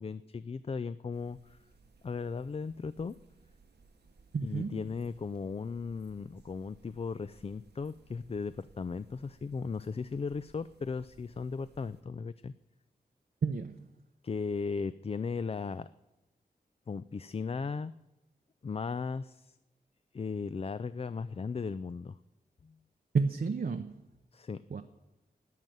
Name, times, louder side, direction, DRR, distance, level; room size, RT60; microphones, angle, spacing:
voice 1, 0.0-1.6 2.0-3.2 4.4-12.5 14.2-15.9 16.9-17.9 18.6-19.6 20.1-22.2 22.6-22.7 24.3-24.6, left 5 dB, 35° left, 14 dB, 0.4 m, -37 dB
sound 1, 1.1-12.0, right 4 dB, 90° right, 1.1 m, -62 dB
voice 2, 4.3-4.8 13.4-13.9 23.1-24.0 24.7-24.8, right 4 dB, 60° right, 7 dB, 0.6 m, -31 dB
12.0 x 7.5 x 9.2 m, 0.99 s
wide cardioid pair, 60°, 17 cm